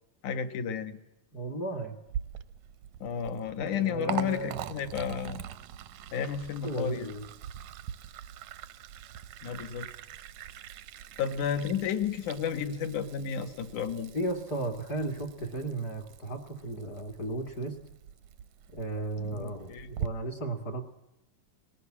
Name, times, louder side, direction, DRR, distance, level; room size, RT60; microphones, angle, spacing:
voice 1, 0.2-1.0 3.0-5.4 6.1-7.1 9.4-9.9 11.2-14.1 19.2-19.9, left 7 dB, 60° left, 8 dB, 2.6 m, -32 dB
voice 2, 1.3-1.9 3.6-4.5 6.6-7.2 14.1-17.8 18.7-20.8, right 2 dB, 35° left, 6 dB, 1.7 m, -35 dB
Liquid, 2.1-20.1, right 10 dB, 75° right, 1.7 m, -43 dB
20.5 x 18.0 x 7.3 m, 0.89 s
omnidirectional pair, 4.3 m